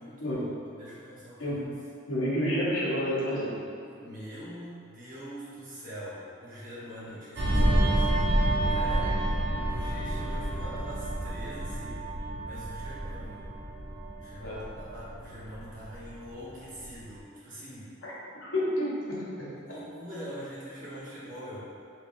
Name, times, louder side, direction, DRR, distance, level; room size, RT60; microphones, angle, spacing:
voice 1, 0.0-1.6 3.8-8.2 8.7-9.1 9.6-12.0 12.4-13.5 14.2-17.9 19.5-21.7, equal, 45° right, -9 dB, 1.0 m, -43 dB
voice 2, 1.4-1.7 2.1-3.6 9.5-9.6 14.4-14.7 18.0-19.5, equal, 85° left, -7 dB, 0.9 m, -30 dB
sound 1, 7.4-16.4 16.7-17.0, right 1 dB, 60° right, 0.5 m, -29 dB
3.2 x 3.0 x 2.5 m, 2.4 s
head